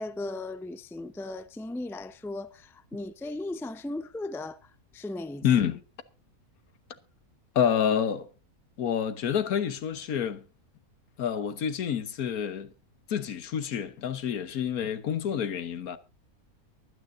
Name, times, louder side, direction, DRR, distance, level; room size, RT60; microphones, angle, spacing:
voice 1, 0.0-5.5, left 2 dB, 5° left, 0.4 m, -37 dB
voice 2, 5.4-5.8 7.5-8.3 8.8-10.4 11.2-12.7 13.1-16.0, left 8 dB, 75° left, 1.5 m, -28 dB
23.0 x 9.4 x 2.6 m
omnidirectional pair, 1.5 m